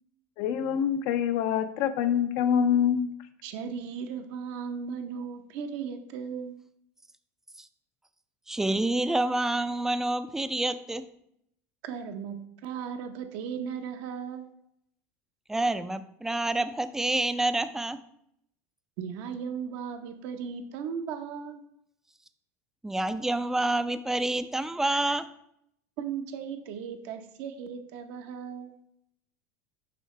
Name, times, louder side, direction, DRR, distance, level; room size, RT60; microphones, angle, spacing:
voice 1, 0.4-3.1, left 8 dB, 65° left, 9 dB, 0.6 m, -25 dB
voice 2, 3.4-6.6 11.8-14.5 19.0-21.6 26.0-28.7, right 7 dB, 65° right, 6 dB, 0.8 m, -36 dB
voice 3, 8.5-11.0 15.5-18.0 22.8-25.3, right 2 dB, 5° right, 11 dB, 0.4 m, -28 dB
6.7 x 5.6 x 3.2 m, 0.72 s
supercardioid pair, 105°, 7 cm